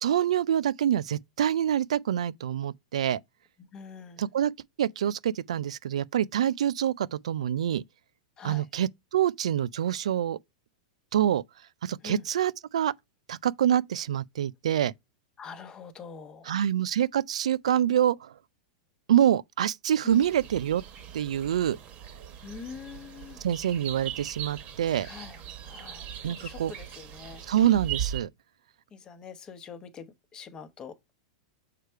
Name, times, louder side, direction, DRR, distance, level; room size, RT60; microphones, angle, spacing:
voice 1, 0.0-3.2 4.2-4.5 4.8-7.8 8.4-10.4 11.1-11.4 11.8-12.9 13.3-14.9 16.5-18.3 19.1-20.8 21.1-21.8 23.4-25.1 26.2-26.7 27.5-28.3, right 10 dB, 85° right, 0.3 m, -26 dB
voice 2, 3.7-4.3 8.4-8.6 12.0-12.2 15.4-16.5 20.0-20.2 22.4-23.4 25.0-25.4 25.6-27.4 28.9-30.1 30.3-30.9, left 6 dB, 25° left, 0.9 m, -44 dB
sound 1, 20.1-28.2, right 10 dB, 40° right, 1.2 m, -39 dB
6.6 x 3.2 x 4.5 m
hypercardioid pair, 135°, 3 cm